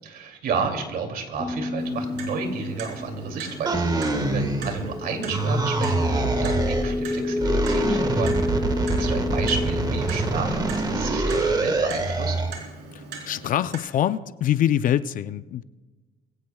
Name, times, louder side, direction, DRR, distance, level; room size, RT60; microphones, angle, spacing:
voice 1, 0.0-12.4, right 5 dB, 65° right, 4 dB, 2.7 m, -32 dB
sound 1, 1.4-11.2, left 2 dB, 10° left, 1.0 m, -29 dB
Clock, 1.8-13.8, right 4 dB, 85° right, 3.6 m, -41 dB
sound 2, 3.7-5.0 5.3-6.9 7.4-12.6, right 2 dB, 25° right, 1.5 m, -25 dB
voice 2, 13.3-15.6, left 11 dB, 55° left, 13 dB, 0.6 m, -24 dB
22.0 x 16.5 x 2.3 m, 1.2 s
cardioid pair, 110°, 17 cm